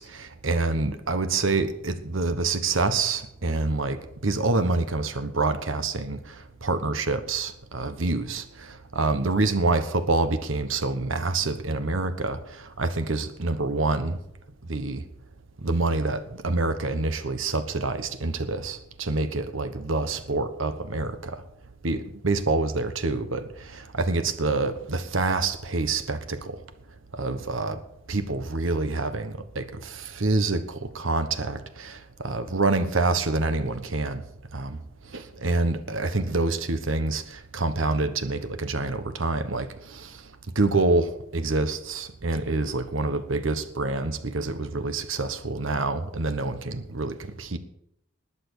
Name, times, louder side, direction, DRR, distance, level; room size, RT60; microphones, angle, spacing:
voice 1, 0.0-6.2 6.6-8.4 8.9-12.4 12.8-14.2 14.7-15.0 15.6-21.3 21.8-23.4 23.7-26.6 27.1-27.8 28.1-32.0 32.2-34.2 34.5-34.8 35.1-39.7 39.9-40.1 40.5-47.6, right 3 dB, 85° right, 10 dB, 1.2 m, -26 dB
20.0 x 6.9 x 6.9 m, 0.78 s
head